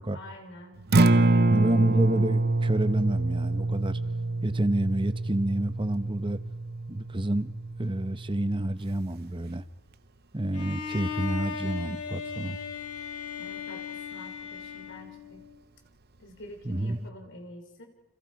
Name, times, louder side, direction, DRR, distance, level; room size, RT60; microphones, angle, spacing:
voice 1, 0.0-1.8 13.4-15.5 16.2-17.9, left 1 dB, 55° left, 4 dB, 3.7 m, -47 dB
Acoustic guitar, 0.8-9.0, right 2 dB, 45° right, 0.8 m, -26 dB
voice 2, 1.5-4.0 4.4-6.4 6.9-7.5 7.8-9.6 10.3-12.6 16.6-17.0, right 1 dB, 20° right, 12 dB, 0.9 m, -29 dB
Bowed string instrument, 10.5-15.6, left 6 dB, 85° left, 3.0 m, -37 dB
29.5 x 27.5 x 4.8 m, 1.1 s
head